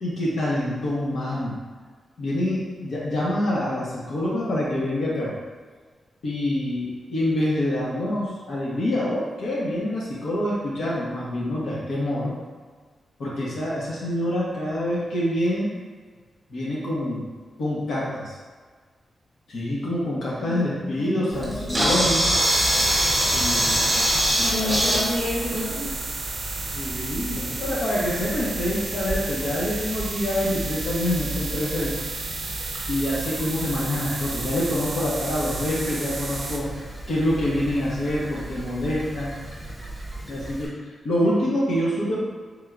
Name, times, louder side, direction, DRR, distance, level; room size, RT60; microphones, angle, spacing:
voice 1, 0.0-1.5 2.2-5.3 6.2-12.3 13.2-15.7 16.5-17.3 17.6-18.4 19.5-22.2 23.3-24.0 24.3-24.7 26.6-31.9 32.9-36.7 37.1-39.3 40.3-40.7 41.0-42.2, left 1 dB, 70° left, -7 dB, 1.1 m, -26 dB
voice 2, 20.4-21.9 24.4-25.9 41.2-41.6, left 2 dB, 30° left, -7 dB, 1.0 m, -30 dB
Camera, 21.3-40.7, right 1 dB, 15° right, 1.2 m, -28 dB
sound 1, 22.4-36.6, right 3 dB, 60° right, 0.5 m, -33 dB
3.6 x 2.5 x 4.5 m, 1.5 s
wide cardioid pair, 160°, 0 cm